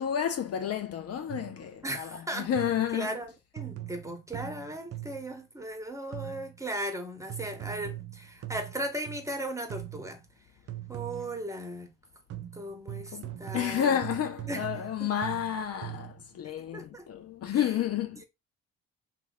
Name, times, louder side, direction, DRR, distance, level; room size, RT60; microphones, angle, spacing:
voice 1, 0.0-3.1 13.1-18.2, left 9 dB, 50° left, 0.5 m, -31 dB
sound 1, 1.3-1.7 2.6-3.0 3.6-5.4 6.1-6.6 7.3-9.4 9.7-10.2 10.7-11.5 12.3-16.3, right 14 dB, 45° right, 0.6 m, -41 dB
voice 2, 1.8-2.5 2.9-10.2 10.9-11.9 12.5-14.0 14.5-15.1 16.6-17.1 17.5-17.6, right 1 dB, 10° right, 0.9 m, -37 dB
2.9 x 2.2 x 3.8 m
hypercardioid pair, 55°, 32 cm